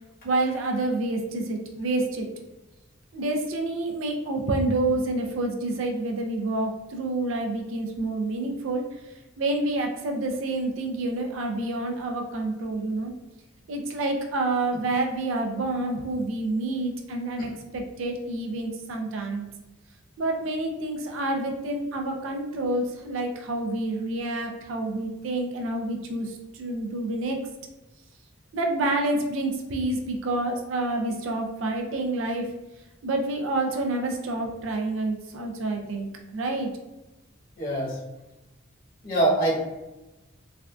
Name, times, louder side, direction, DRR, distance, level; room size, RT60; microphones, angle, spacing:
voice 1, 0.2-2.3 3.1-8.8 9.4-13.1 13.7-19.5 20.2-27.4 28.5-32.5 33.0-36.1 36.3-36.7, right 2 dB, 90° right, 3 dB, 0.4 m, -28 dB
voice 2, 37.6-38.0 39.0-39.6, right 1 dB, 50° left, -6 dB, 1.1 m, -24 dB
3.3 x 2.4 x 2.3 m, 1.0 s
head